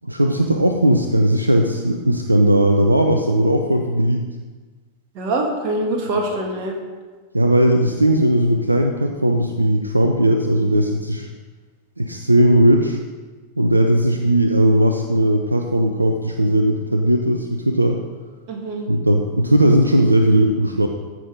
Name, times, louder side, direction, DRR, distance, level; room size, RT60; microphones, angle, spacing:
voice 1, 0.0-4.2 7.3-11.3 12.0-13.0 13.6-18.0 18.9-20.9, right 1 dB, 85° right, 4 dB, 0.7 m, -17 dB
voice 2, 5.1-6.8 18.5-18.9, right 2 dB, 45° right, 1 dB, 2.3 m, -24 dB
14.5 x 6.2 x 5.1 m, 1.3 s
figure-of-eight pair, 90°, 0 cm